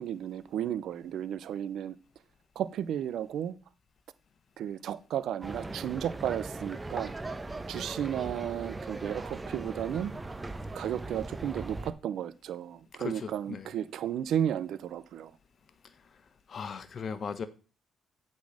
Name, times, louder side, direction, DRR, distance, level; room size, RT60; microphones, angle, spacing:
voice 1, 0.0-2.0 2.6-3.5 4.6-7.1 7.7-10.1 10.7-15.3, right 10 dB, 75° right, 16 dB, 0.6 m, -33 dB
sound 1, 5.4-11.9, right 2 dB, 20° right, 0.9 m, -39 dB
voice 2, 13.0-13.7 16.5-17.5, left 6 dB, 50° left, 12 dB, 1.1 m, -37 dB
8.2 x 4.2 x 6.3 m, 0.36 s
cardioid pair, 80°, 0 cm